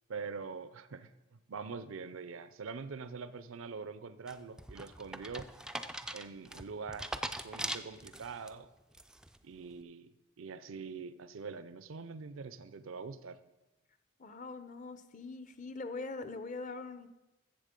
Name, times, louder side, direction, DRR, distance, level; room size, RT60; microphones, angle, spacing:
voice 1, 0.1-1.1 1.5-5.5 6.1-7.1 7.4-8.7 9.4-10.1 10.4-13.4, right 5 dB, 75° right, 13 dB, 0.5 m, -44 dB
sound 1, 4.3-8.5 8.9-9.4, right 1 dB, 5° right, 0.3 m, -41 dB
voice 2, 14.2-17.1, left 3 dB, 35° left, 11 dB, 0.7 m, -42 dB
14.0 x 7.3 x 5.1 m, 1.0 s
head